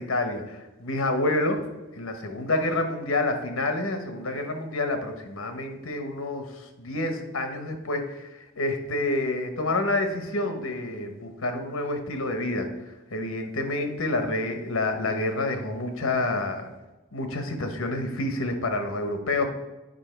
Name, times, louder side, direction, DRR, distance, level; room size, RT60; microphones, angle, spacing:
voice 1, 0.0-1.6 1.9-8.3 8.6-12.7 13.1-16.7 17.1-19.5, left 2 dB, 65° left, 6 dB, 1.0 m, -28 dB
8.9 x 5.2 x 4.4 m, 1.1 s
head